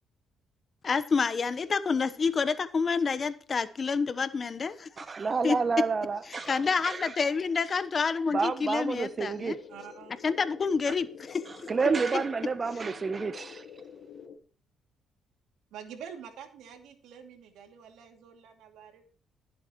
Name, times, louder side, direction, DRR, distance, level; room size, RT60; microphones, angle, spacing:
voice 1, 0.8-4.9 5.4-5.6 6.5-9.6 10.2-11.5 12.1-12.2 12.7-12.8, left 5 dB, 40° left, 1.0 m, -28 dB
voice 2, 5.0-6.5 6.8-7.1 8.3-9.6 11.7-13.6, right 4 dB, 35° right, 0.8 m, -29 dB
sound 1, 9.0-14.4, left 6 dB, 70° left, 1.3 m, -48 dB
voice 3, 9.7-10.2 12.9-13.1 15.7-19.0, right 8 dB, 85° right, 2.5 m, -47 dB
20.0 x 7.7 x 3.1 m
cardioid pair, 90°, 0 cm